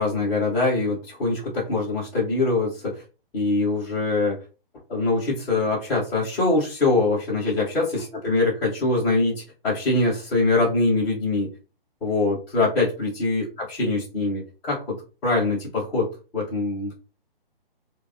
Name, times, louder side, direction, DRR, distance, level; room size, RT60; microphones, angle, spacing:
voice 1, 0.0-3.0 3.3-4.4 4.9-9.3 9.6-11.5 12.0-15.0 15.2-16.9, left 3 dB, 5° left, -9 dB, 0.4 m, -23 dB
3.1 x 2.0 x 2.4 m, 0.33 s
hypercardioid pair, 155°, 29 cm